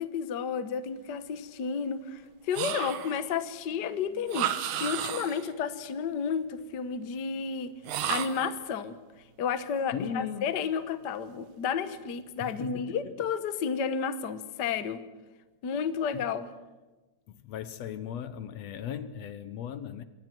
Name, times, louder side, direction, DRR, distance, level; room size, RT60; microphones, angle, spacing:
voice 1, 0.0-7.7 8.1-9.0 9.4-15.0 15.6-16.5, left 6 dB, 55° left, 1.3 m, -32 dB
sound 1, 2.5-3.3 4.3-5.5 7.8-8.6, right 10 dB, 85° right, 2.6 m, -32 dB
voice 2, 9.9-10.5 12.4-13.3 16.1-16.3 17.4-20.0, left 8 dB, 70° left, 1.9 m, -37 dB
27.0 x 23.0 x 6.1 m
omnidirectional pair, 3.3 m